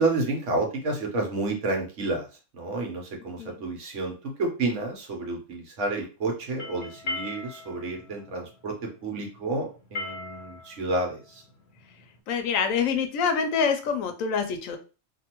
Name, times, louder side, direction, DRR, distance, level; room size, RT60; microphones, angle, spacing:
voice 1, 0.0-2.3 2.5-11.4, right 2 dB, 70° right, 1 dB, 1.1 m, -30 dB
sound 1, 6.4-12.1, left 2 dB, 55° left, 1.2 m, -39 dB
voice 2, 12.3-14.8, left 6 dB, 85° left, 7 dB, 1.0 m, -26 dB
2.6 x 2.6 x 2.8 m, 0.33 s
omnidirectional pair, 1.4 m